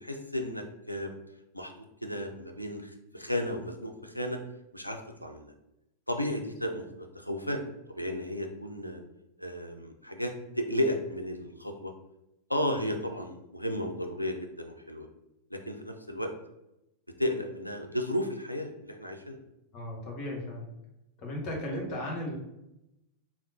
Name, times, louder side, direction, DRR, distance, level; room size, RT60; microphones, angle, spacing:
voice 1, 0.0-1.1 1.5-1.7 2.0-4.4 4.7-5.5 6.1-7.6 8.0-9.0 9.4-11.9 12.5-15.1 15.5-16.3 17.2-19.4, equal, 90° left, 4 dB, 0.3 m, -33 dB
voice 2, 19.7-20.7 21.2-22.3, left 1 dB, 40° left, -1 dB, 1.1 m, -35 dB
3.4 x 2.0 x 2.7 m, 0.88 s
figure-of-eight pair, 90°, 0 cm